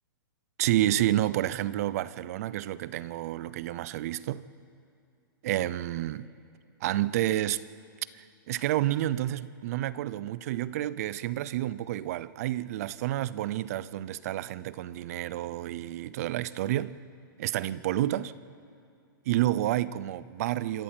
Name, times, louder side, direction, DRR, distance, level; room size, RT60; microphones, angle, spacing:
voice 1, 0.6-4.4 5.4-6.3 6.8-7.6 8.1-17.0 17.4-18.3 19.3-20.8, right 14 dB, 45° right, 0.6 m, -29 dB
27.0 x 13.5 x 7.6 m
hypercardioid pair, 160°, 12 cm